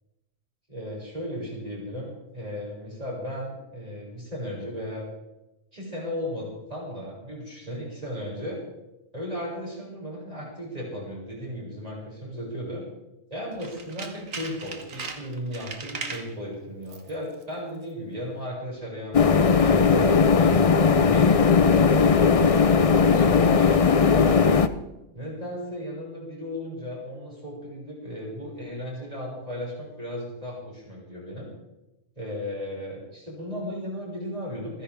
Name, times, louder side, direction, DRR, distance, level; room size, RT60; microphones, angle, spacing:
voice 1, 0.7-5.1 5.7-8.6 9.1-12.8 13.3-20.5 21.0-24.6 25.1-31.5 32.1-34.8, equal, 30° right, -4 dB, 6.6 m, -35 dB
Tools, 13.5-16.3 16.8-17.2 17.4-17.5, right 4 dB, 85° right, 1.9 m, -38 dB
sound 1, 19.1-24.7, left 5 dB, 40° left, 0.5 m, -18 dB
28.5 x 10.5 x 3.6 m, 0.96 s
omnidirectional pair, 1.4 m